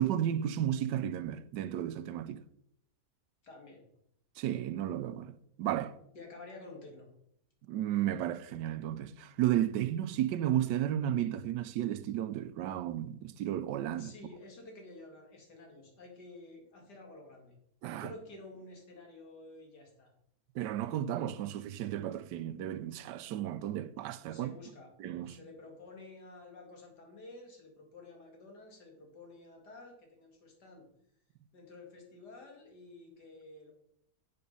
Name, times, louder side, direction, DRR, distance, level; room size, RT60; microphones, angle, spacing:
voice 1, 0.0-2.4 4.4-6.0 7.7-14.1 17.8-18.1 20.5-24.5 25.0-25.4, right 11 dB, 85° right, 1.2 m, -33 dB
voice 2, 3.4-3.8 6.1-7.1 14.0-17.6 18.0-20.1 24.3-24.9 25.2-30.9 31.5-33.7, left 2 dB, 75° left, 2.7 m, -51 dB
7.6 x 6.8 x 5.3 m
omnidirectional pair, 1.8 m